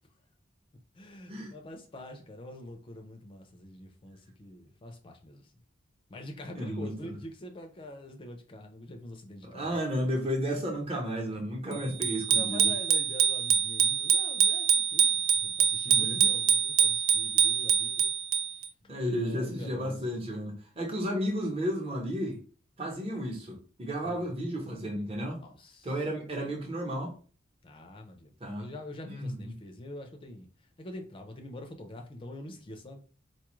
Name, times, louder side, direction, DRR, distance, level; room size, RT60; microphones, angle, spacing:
voice 1, 1.0-5.5 6.1-10.2 11.7-18.1 19.1-20.0 24.0-24.3 25.4-25.9 27.6-30.5 30.8-33.0, left 1 dB, 25° left, 0.5 m, -45 dB
voice 2, 6.5-7.2 9.4-12.7 15.8-16.3 18.9-22.4 22.8-25.4 25.8-27.1 28.4-28.7 29.0-29.5, equal, 30° right, 0.9 m, -33 dB
Bicycle bell, 12.0-18.7, right 8 dB, 65° right, 0.3 m, -25 dB
4.2 x 2.3 x 3.0 m
head